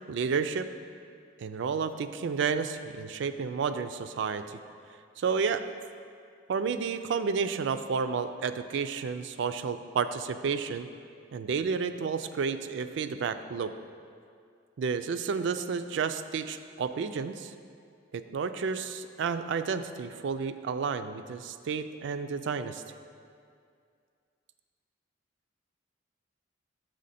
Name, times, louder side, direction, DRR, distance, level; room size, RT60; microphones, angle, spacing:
voice 1, 0.1-0.7 1.4-4.6 5.2-5.6 6.5-10.9 11.3-13.7 14.8-17.5 18.1-22.8, right 5 dB, 65° right, 10 dB, 0.3 m, -31 dB
6.4 x 6.3 x 4.1 m, 2.3 s
head